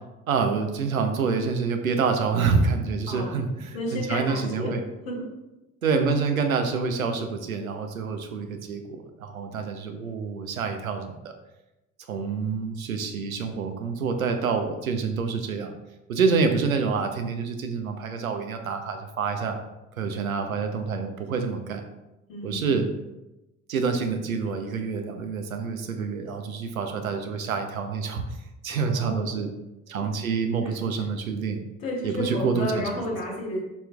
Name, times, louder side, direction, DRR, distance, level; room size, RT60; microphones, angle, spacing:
voice 1, 0.3-4.8 5.8-11.3 12.1-15.7 16.1-19.6 20.0-21.8 22.4-22.9 23.7-28.4 28.6-29.5 29.9-31.6 32.0-32.9, right 5 dB, 85° right, 5 dB, 0.7 m, -27 dB
voice 2, 3.1-3.4 3.7-4.7 5.0-5.3 22.3-22.7 28.7-29.4 30.6-30.7 31.8-33.6, left 1 dB, 70° left, -4 dB, 2.1 m, -32 dB
11.5 x 4.4 x 2.3 m, 0.98 s
figure-of-eight pair, 50°, 41 cm